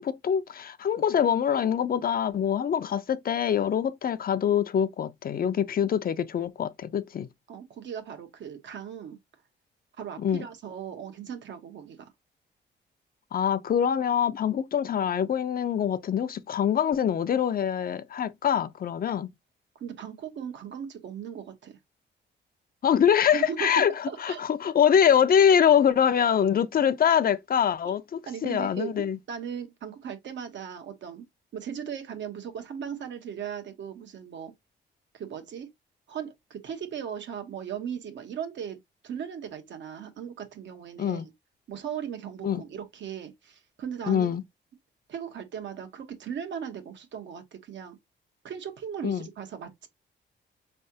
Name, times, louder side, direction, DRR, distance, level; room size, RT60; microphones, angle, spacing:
voice 1, 0.0-7.3 10.2-10.4 13.3-19.3 22.8-29.2 41.0-41.3 42.4-42.6 44.1-44.4 49.0-49.3, left 8 dB, 50° left, 0.5 m, -24 dB
voice 2, 7.5-9.2 10.0-12.0 19.8-21.8 23.3-23.7 24.1-24.4 27.8-28.0 28.3-28.9 29.3-31.2 31.5-34.5 35.1-35.7 36.1-38.8 39.0-41.3 41.7-44.4 45.1-48.0 48.4-49.9, right 8 dB, 75° right, 1.2 m, -37 dB
4.6 x 3.3 x 2.7 m
cardioid pair, 95°, 19 cm